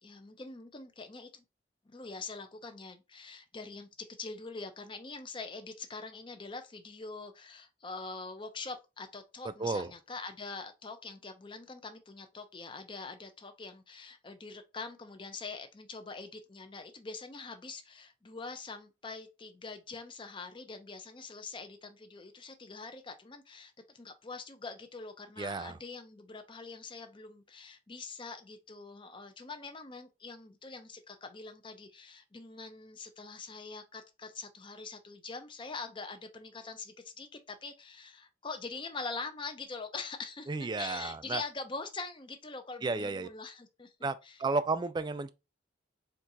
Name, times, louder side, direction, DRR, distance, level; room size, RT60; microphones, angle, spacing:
voice 1, 0.0-1.4 1.9-44.4, left 4 dB, 25° left, 0.6 m, -44 dB
voice 2, 9.6-9.9 25.4-25.8 40.5-41.4 42.8-43.3 44.0-45.3, right 3 dB, 25° right, 0.3 m, -33 dB
4.5 x 2.4 x 3.9 m
head